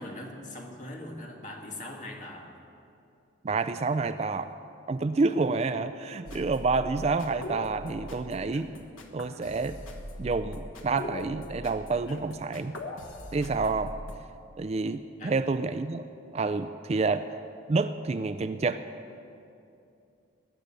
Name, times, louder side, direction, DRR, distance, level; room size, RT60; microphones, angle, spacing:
voice 1, 0.0-2.5 15.2-15.4, left 1 dB, 40° left, 0 dB, 1.9 m, -41 dB
voice 2, 3.4-4.5 4.9-8.7 9.1-9.8 10.2-12.8 13.3-13.9 14.6-16.0 16.3-17.3 17.7-18.8, right 3 dB, 30° right, 11 dB, 0.3 m, -28 dB
sound 1, 6.3-14.2, left 1 dB, 90° left, 1.3 m, -41 dB
20.0 x 6.6 x 9.0 m, 2.6 s
head